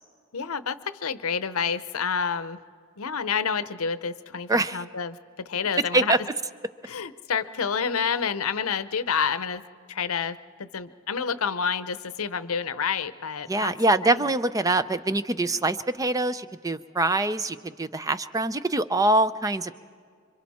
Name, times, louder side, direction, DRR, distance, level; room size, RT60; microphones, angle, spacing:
voice 1, 0.3-2.6 3.0-6.1 6.8-9.6 9.9-13.7 14.0-14.2, left 6 dB, 70° left, 14 dB, 0.8 m, -29 dB
voice 2, 4.5-4.8 5.9-6.2 13.5-19.7, right 2 dB, 15° right, 13 dB, 0.5 m, -24 dB
27.0 x 25.0 x 4.2 m, 2.1 s
head